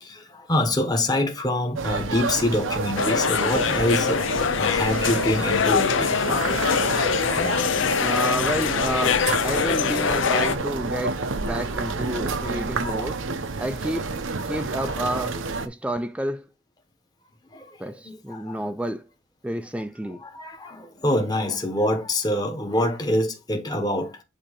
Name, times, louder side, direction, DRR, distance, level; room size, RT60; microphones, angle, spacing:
voice 1, 0.0-6.1 17.5-18.6 20.2-24.2, left 1 dB, 20° left, 1.1 m, -25 dB
sound 1, 1.8-15.7, right 3 dB, 75° right, 0.8 m, -29 dB
sound 2, 3.0-10.6, left 6 dB, 70° left, 0.6 m, -23 dB
voice 2, 8.0-13.2 13.6-14.2 14.5-16.5 17.8-19.0 19.4-20.2, right 1 dB, 5° right, 0.4 m, -30 dB
8.7 x 2.9 x 5.0 m
head